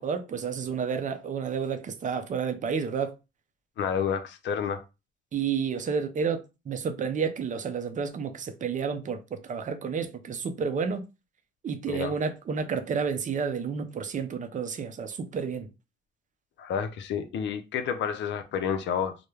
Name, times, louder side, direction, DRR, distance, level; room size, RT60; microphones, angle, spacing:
voice 1, 0.0-3.1 5.3-6.4 6.7-11.1 11.6-15.7, right 6 dB, 40° right, 0.5 m, -30 dB
voice 2, 3.8-4.8 11.9-12.1 16.6-19.2, left 7 dB, 65° left, 0.5 m, -30 dB
2.2 x 2.1 x 3.1 m
cardioid pair, 90°, 20 cm